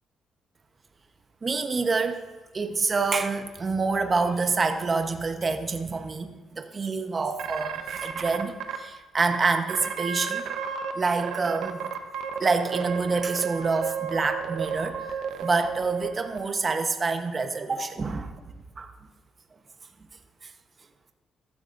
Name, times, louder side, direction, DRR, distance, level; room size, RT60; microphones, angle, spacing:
voice 1, 1.4-2.2 2.5-10.4 10.9-11.9 12.4-18.4 18.8-18.9 20.4-20.5, right 4 dB, 35° right, 6 dB, 1.0 m, -27 dB
sound 1, 7.4-8.8 9.3-9.4 9.7-10.9 11.2-16.4, right 7 dB, 80° right, 0.9 m, -32 dB
15.0 x 12.0 x 2.6 m, 1.2 s
cardioid pair, 90°, 0 cm